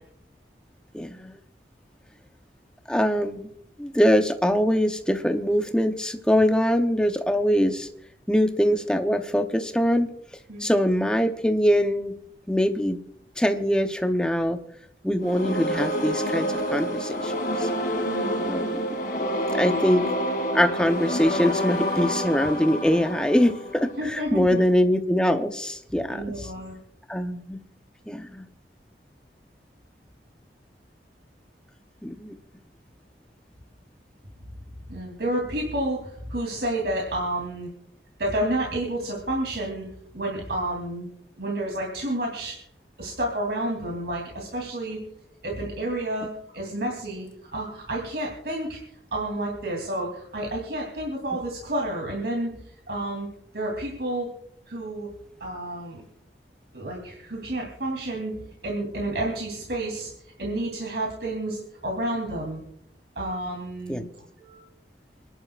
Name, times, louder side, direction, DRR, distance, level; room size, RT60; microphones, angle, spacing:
voice 1, 0.9-1.3 2.9-3.5 3.8-7.9 8.3-10.1 10.6-12.1 12.5-13.0 13.4-14.6 15.0-17.7 18.4-18.8 19.5-20.1 20.5-26.5 27.1-27.6 28.1-28.5 32.0-32.3 63.9-64.0, equal, 5° left, 6 dB, 0.8 m, -23 dB
sound 1, 15.2-24.1, equal, 50° left, 2.7 m, -28 dB
voice 2, 18.0-18.5 24.0-24.6 26.1-26.7 34.9-37.7 38.2-39.9 40.1-41.1 41.4-42.6 43.0-45.0 45.4-47.3 47.5-48.8 49.1-52.6 52.9-53.3 53.5-54.3 54.7-55.1 55.4-56.0 56.7-58.4 58.6-60.1 60.4-62.6 63.1-64.0 64.4-64.6, right 1 dB, 75° right, -1 dB, 3.1 m, -30 dB
27.5 x 11.0 x 2.5 m, 0.72 s
head